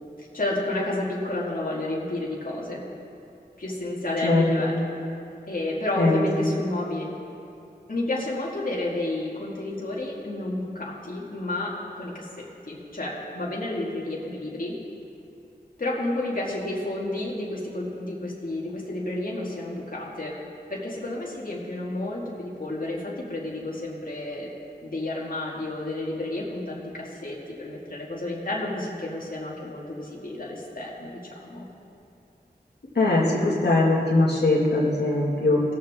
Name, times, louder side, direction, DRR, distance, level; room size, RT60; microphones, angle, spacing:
voice 1, 0.2-2.8 3.6-4.8 5.5-7.1 7.9-14.7 15.8-20.4 20.7-24.5 24.8-31.7, left 2 dB, 55° left, -5 dB, 1.9 m, -31 dB
voice 2, 4.2-4.7 6.0-6.2 33.0-35.6, left 2 dB, 75° left, -5 dB, 1.9 m, -21 dB
19.0 x 7.3 x 3.6 m, 2.6 s
wide cardioid pair, 60°, 17 cm